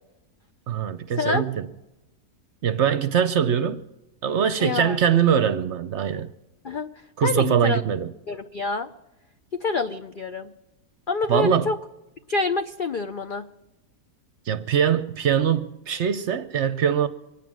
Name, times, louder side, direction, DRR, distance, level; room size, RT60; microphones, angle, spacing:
voice 1, 0.7-1.6 2.6-3.8 4.2-6.3 7.2-8.1 11.3-11.7 14.5-17.1, right 8 dB, 60° right, 0.8 m, -22 dB
voice 2, 4.6-5.0 6.6-6.9 7.2-7.8 8.3-8.9 9.5-10.5 11.1-11.8 12.3-13.5, left 4 dB, 65° left, 0.5 m, -26 dB
24.0 x 9.1 x 6.2 m
omnidirectional pair, 1.6 m